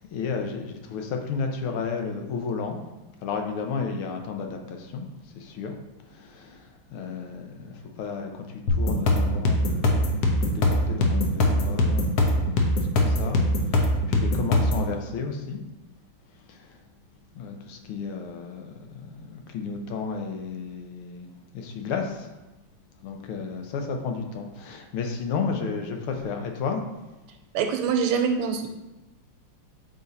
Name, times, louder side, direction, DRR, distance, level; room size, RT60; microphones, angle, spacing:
voice 1, 0.0-2.8 3.2-5.1 5.4-5.7 6.1-13.4 14.1-15.6 16.5-16.6 17.3-18.7 19.0-21.3 21.5-22.3 23.0-26.8, left 5 dB, 80° left, 4 dB, 1.7 m, -32 dB
sound 1, 8.7-14.9, left 1 dB, 60° left, 1.1 m, -22 dB
voice 2, 27.5-28.7, right 6 dB, 85° right, 5 dB, 1.6 m, -24 dB
6.3 x 4.0 x 4.0 m, 1.0 s
omnidirectional pair, 2.4 m